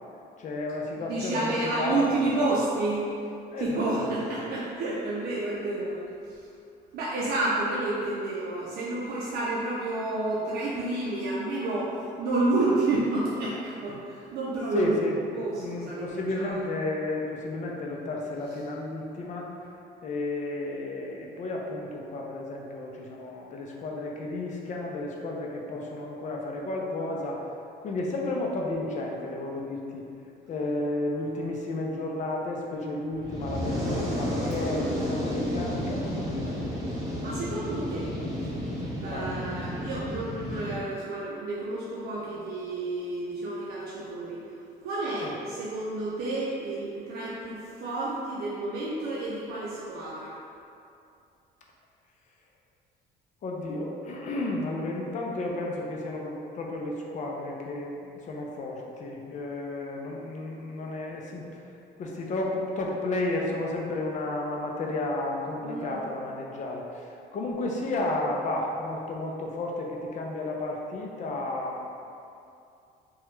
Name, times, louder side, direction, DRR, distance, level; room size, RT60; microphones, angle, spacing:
voice 1, 0.4-2.5 3.5-4.0 14.7-15.2 15.6-19.5 20.0-27.4 27.8-30.0 30.5-36.9 39.1-39.3 45.2-45.3 53.4-58.0 58.3-61.4 62.0-71.8, left 2 dB, 45° left, -1 dB, 0.5 m, -32 dB
voice 2, 1.1-3.0 3.6-6.0 6.3-6.4 6.9-15.0 15.3-16.6 37.2-38.1 39.0-44.4 44.8-50.4 65.6-66.0, right 2 dB, 65° right, -7 dB, 0.5 m, -30 dB
Fire, 33.1-40.8, equal, 20° right, 1.0 m, -32 dB
2.9 x 2.3 x 3.1 m, 2.6 s
cardioid pair, 110°, 17 cm